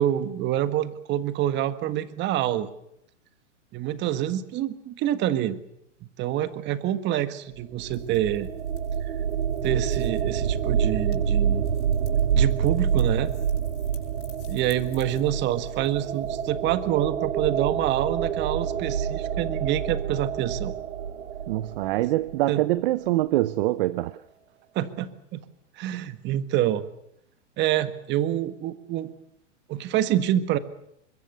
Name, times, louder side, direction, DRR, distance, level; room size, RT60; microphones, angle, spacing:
voice 1, 0.0-2.7 3.7-5.6 6.0-8.5 9.0-9.1 9.6-11.6 12.3-13.3 14.5-20.7 22.5-22.6 24.7-25.4 25.8-26.8 27.6-29.1 29.7-30.6, right 12 dB, 30° right, 1.6 m, -27 dB
sound 1, 7.6-22.4, right 8 dB, 90° right, 1.7 m, -27 dB
sound 2, 7.9-16.5, left 10 dB, 70° left, 7.4 m, -56 dB
voice 2, 21.5-24.2, right 16 dB, 50° right, 0.8 m, -24 dB
25.0 x 22.0 x 6.8 m
hypercardioid pair, 135°, 37 cm